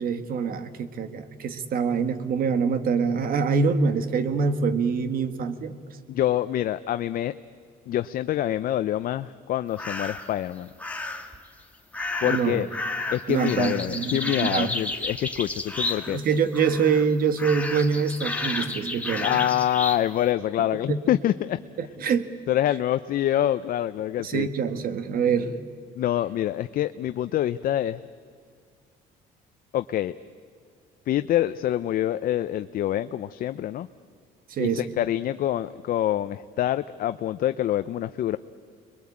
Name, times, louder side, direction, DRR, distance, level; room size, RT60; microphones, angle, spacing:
voice 1, 0.0-5.8 12.2-12.6 13.3-14.7 16.1-19.4 20.9-21.0 21.8-22.3 24.2-25.7 34.5-34.9, right 5 dB, 60° right, 10 dB, 1.8 m, -25 dB
voice 2, 6.1-7.3 7.9-10.7 12.2-12.7 13.1-16.2 19.2-21.6 22.5-24.5 26.0-28.0 29.7-30.1 31.1-33.9 34.6-38.4, left 12 dB, 60° left, 11 dB, 0.6 m, -26 dB
sound 1, 9.8-10.3 10.8-11.4 11.9-16.3 16.5-17.1 17.4-20.0, left 2 dB, 10° left, 2.0 m, -31 dB
26.5 x 22.0 x 8.7 m, 2.1 s
cardioid pair, 110°, 17 cm